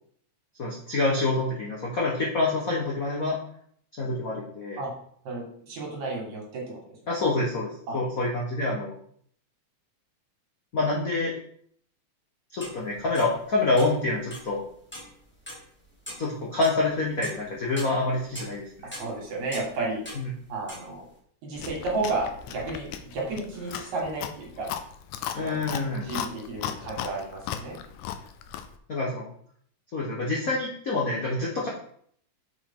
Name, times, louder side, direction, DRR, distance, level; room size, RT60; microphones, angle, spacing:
voice 1, 0.6-3.4 4.0-4.8 7.1-8.9 10.7-11.3 12.5-14.6 16.2-18.7 20.2-20.3 25.3-26.1 28.9-29.2 29.9-31.7, left 2 dB, 65° left, -3 dB, 0.8 m, -27 dB
voice 2, 5.2-6.8 7.9-8.0 18.8-20.0 20.5-21.1 21.4-24.7 25.4-25.7 26.0-27.8, right 3 dB, 70° right, -2 dB, 3.3 m, -32 dB
sound 1, 12.6-13.3 13.8-14.6 14.9-15.2 15.5-15.6 16.1-16.3 16.6-16.8 17.2-20.4 20.7-20.9, equal, 5° left, 1.3 m, -41 dB
Chewing mastication, 21.6-28.8, left 9 dB, 90° left, 2.0 m, -37 dB
6.4 x 5.3 x 3.7 m, 0.62 s
omnidirectional pair, 3.4 m